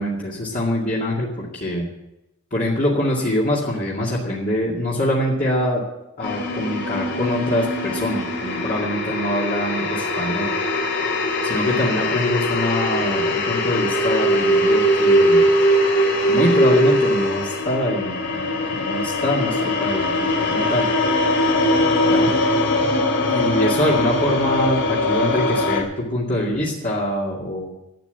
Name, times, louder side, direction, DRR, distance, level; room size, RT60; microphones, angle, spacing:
voice 1, 0.0-1.9 2.5-5.8 6.2-10.5 11.4-15.5 16.3-20.9 22.0-22.3 23.3-27.7, left 1 dB, 45° left, -6 dB, 2.4 m, -24 dB
sound 1, 6.2-25.8, left 1 dB, 65° left, 2.9 m, -21 dB
12.0 x 8.7 x 9.3 m, 0.91 s
head